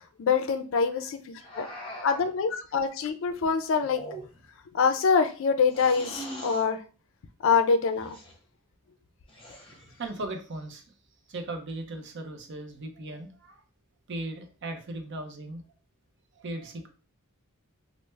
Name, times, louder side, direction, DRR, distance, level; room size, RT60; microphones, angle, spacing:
voice 1, 0.2-1.7 2.0-4.0 4.7-6.8 7.4-8.2, left 5 dB, 60° left, 0.4 m, -25 dB
sound 1, 1.4-2.3 3.8-4.6 5.7-6.7 7.9-8.4 9.3-10.0, equal, 25° left, 0.8 m, -41 dB
voice 2, 10.0-10.8 11.3-13.6 14.1-15.6 16.3-16.9, right 2 dB, 55° right, 0.6 m, -37 dB
3.2 x 2.0 x 3.2 m
head